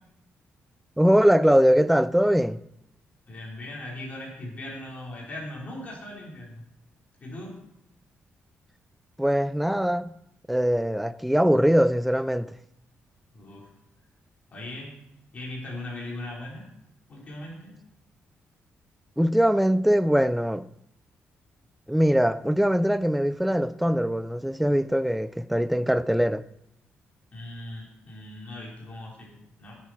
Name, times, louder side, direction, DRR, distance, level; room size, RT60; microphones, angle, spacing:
voice 1, 1.0-2.6 9.2-10.1 10.5-12.5 19.2-20.6 21.9-26.4, equal, ahead, 0.4 m, -22 dB
voice 2, 3.3-6.6 7.2-7.6 13.3-13.7 14.5-14.9 15.3-16.6 17.1-17.7 27.3-29.8, left 1 dB, 30° left, 4.6 m, -39 dB
18.5 x 9.7 x 4.5 m
wide cardioid pair, 170°, 5 cm